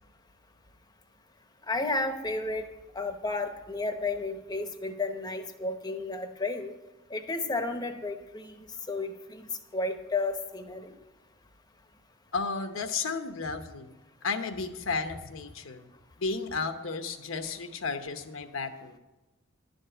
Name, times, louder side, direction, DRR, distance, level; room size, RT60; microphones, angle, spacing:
voice 1, 1.7-2.6 2.9-6.7 7.1-11.0, left 3 dB, 20° left, 7 dB, 0.9 m, -32 dB
voice 2, 12.3-13.9 14.2-15.9 16.2-19.0, left 4 dB, 85° left, 7 dB, 1.0 m, -33 dB
11.5 x 5.3 x 7.8 m, 1.1 s
head